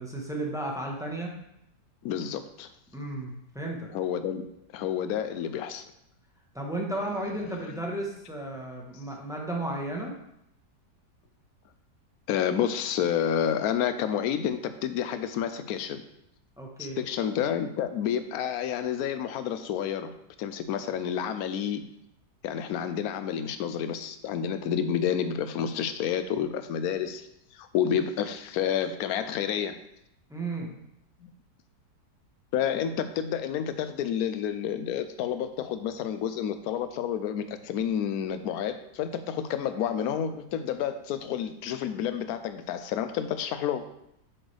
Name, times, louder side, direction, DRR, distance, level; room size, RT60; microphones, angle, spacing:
voice 1, 0.0-1.3 2.9-3.9 6.5-10.1 16.6-17.0 30.3-30.8, right 1 dB, ahead, -2 dB, 0.9 m, -34 dB
voice 2, 2.0-2.7 3.9-4.5 4.7-5.8 12.3-16.0 16.8-20.1 20.4-21.8 22.4-27.3 27.5-29.8 31.2-31.3 32.5-43.8, left 9 dB, 70° left, 10 dB, 1.0 m, -29 dB
7.7 x 6.2 x 3.4 m, 0.79 s
omnidirectional pair, 1.8 m